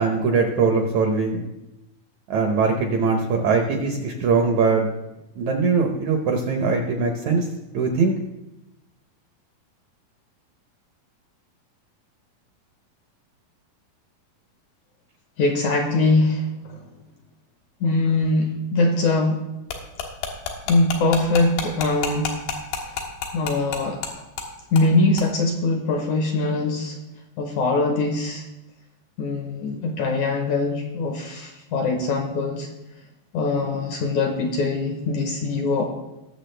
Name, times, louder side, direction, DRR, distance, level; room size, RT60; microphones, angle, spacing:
voice 1, 0.0-1.5 2.3-4.9 5.4-7.5 7.7-8.2, right 4 dB, 70° right, 3 dB, 1.8 m, -21 dB
voice 2, 15.4-16.8 17.8-19.4 20.7-22.4 23.3-24.0 24.7-27.0 27.4-28.4 29.2-32.7 33.3-35.8, left 2 dB, 65° left, 3 dB, 2.0 m, -22 dB
sound 1, 19.7-24.1 24.4-24.5 24.8-24.9 25.2-25.3, left 7 dB, 85° left, 3.4 m, -28 dB
20.0 x 7.1 x 3.3 m, 0.95 s
omnidirectional pair, 4.4 m